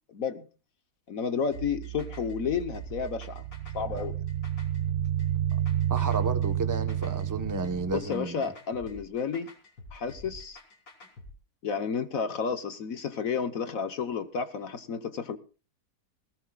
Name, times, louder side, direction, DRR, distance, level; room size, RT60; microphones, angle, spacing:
voice 1, 0.1-0.5 1.1-3.4 3.7-4.2 7.9-9.5 9.9-10.6 11.6-15.4, left 6 dB, 55° left, 1.4 m, -31 dB
sound 1, 1.5-11.3, left 2 dB, 85° left, 4.3 m, -48 dB
Piano, 1.5-7.8, right 19 dB, 90° right, 2.3 m, -43 dB
sound 2, 3.4-8.2, right 11 dB, 55° right, 1.3 m, -29 dB
voice 2, 5.9-8.5, right 3 dB, 15° right, 0.8 m, -32 dB
20.5 x 18.5 x 2.4 m
omnidirectional pair, 1.9 m